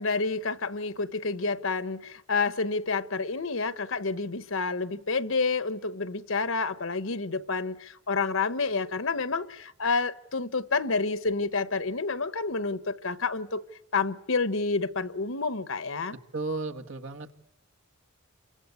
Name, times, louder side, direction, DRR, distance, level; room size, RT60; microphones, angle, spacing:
voice 1, 0.0-13.6 13.9-16.2, left 4 dB, 65° left, 1.1 m, -29 dB
voice 2, 16.3-17.3, right 3 dB, 65° right, 1.7 m, -33 dB
28.5 x 25.0 x 8.5 m
head